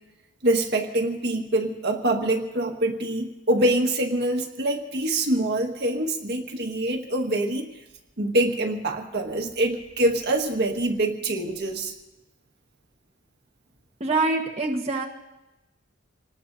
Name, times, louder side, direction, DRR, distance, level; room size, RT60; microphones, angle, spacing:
voice 1, 0.4-7.7 8.2-11.9, right 1 dB, 50° right, 3 dB, 1.6 m, -25 dB
voice 2, 14.0-15.0, right 3 dB, 30° right, -3 dB, 1.3 m, -25 dB
26.5 x 19.5 x 2.7 m, 0.99 s
head